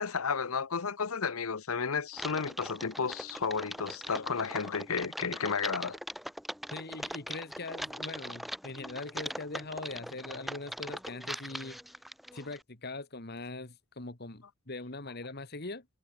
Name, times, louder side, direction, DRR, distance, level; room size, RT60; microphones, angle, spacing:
voice 1, 0.0-6.0, left 5 dB, 80° left, 0.9 m, -32 dB
Typing, 2.1-12.6, equal, ahead, 0.5 m, -41 dB
voice 2, 6.7-11.8 12.3-15.9, left 2 dB, 50° left, 2.0 m, -41 dB
head